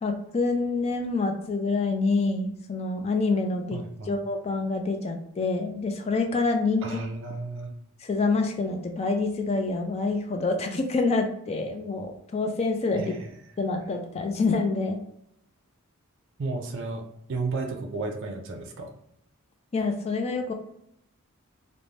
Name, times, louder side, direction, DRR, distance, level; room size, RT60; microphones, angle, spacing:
voice 1, 0.0-7.0 8.0-13.1 13.6-15.0 19.7-20.5, left 3 dB, 30° left, 4 dB, 0.3 m, -27 dB
voice 2, 3.7-4.2 6.8-7.7 13.0-13.3 16.4-17.0 17.3-18.9, right 3 dB, 55° right, 2 dB, 0.5 m, -33 dB
2.6 x 2.1 x 3.1 m, 0.73 s
head